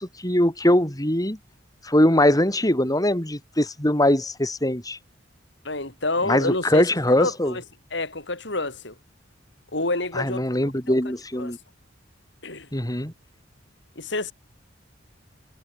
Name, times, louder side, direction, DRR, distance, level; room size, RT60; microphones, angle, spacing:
voice 1, 0.0-1.4 1.8-5.0 6.2-7.5 10.1-11.6 12.7-13.1, left 1 dB, 20° left, 6.2 m, -21 dB
voice 2, 5.6-7.6 7.9-8.9 9.7-10.6 10.9-11.0 11.3-11.6 12.4-12.7 14.0-14.3, left 2 dB, 65° left, 6.5 m, -28 dB
head